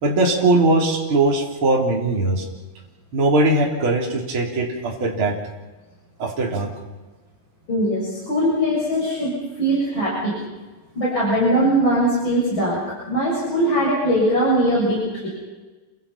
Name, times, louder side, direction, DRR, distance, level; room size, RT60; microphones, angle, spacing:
voice 1, 0.0-2.4 3.1-5.3 6.2-6.7, right 2 dB, 35° right, -1 dB, 4.1 m, -20 dB
voice 2, 7.7-10.3 11.0-12.8 13.1-15.3, right 1 dB, 35° left, -5 dB, 7.7 m, -20 dB
29.5 x 25.0 x 5.8 m, 1.2 s
omnidirectional pair, 4.0 m